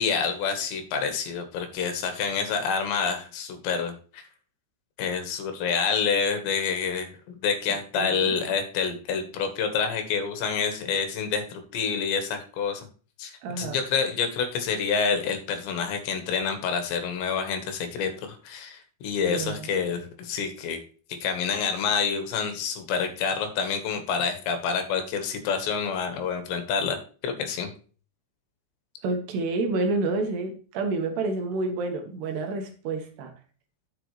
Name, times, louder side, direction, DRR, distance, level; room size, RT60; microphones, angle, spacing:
voice 1, 0.0-4.3 5.0-7.1 7.4-12.9 13.2-13.3 13.6-20.8 21.2-27.7, left 6 dB, 75° left, 6 dB, 3.6 m, -28 dB
voice 2, 8.0-8.3 13.4-13.8 19.3-19.7 29.0-33.3, right 3 dB, 70° right, 4 dB, 3.4 m, -29 dB
11.0 x 7.6 x 3.2 m, 0.39 s
omnidirectional pair, 5.2 m